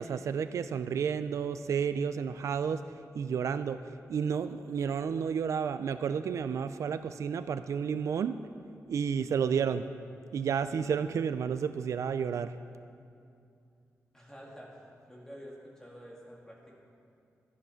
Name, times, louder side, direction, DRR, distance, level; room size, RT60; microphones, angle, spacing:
voice 1, 0.0-2.8 3.1-3.8 4.1-8.4 8.9-9.9 10.3-12.5, right 7 dB, 75° right, 11 dB, 0.4 m, -31 dB
voice 2, 14.1-16.8, equal, 10° left, -3 dB, 2.4 m, -49 dB
13.5 x 9.6 x 5.8 m, 2.4 s
wide cardioid pair, 140°, 5 cm